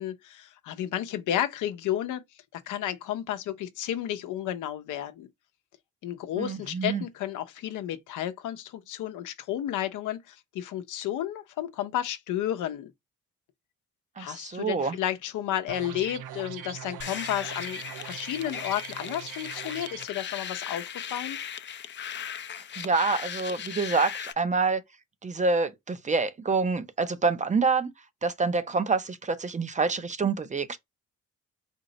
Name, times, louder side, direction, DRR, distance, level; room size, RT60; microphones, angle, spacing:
voice 1, 0.0-2.2 2.5-5.3 6.0-12.9 14.2-21.4, left 11 dB, 80° left, 0.7 m, -32 dB
voice 2, 6.4-7.0 14.2-15.0 22.8-24.8 25.2-27.9 28.2-30.8, right 4 dB, 25° right, 0.5 m, -27 dB
sound 1, 15.7-20.1, right 10 dB, 85° right, 0.6 m, -41 dB
sound 2, 17.0-24.3, left 8 dB, 40° left, 0.5 m, -37 dB
4.4 x 2.0 x 3.8 m
cardioid pair, 90°, 30 cm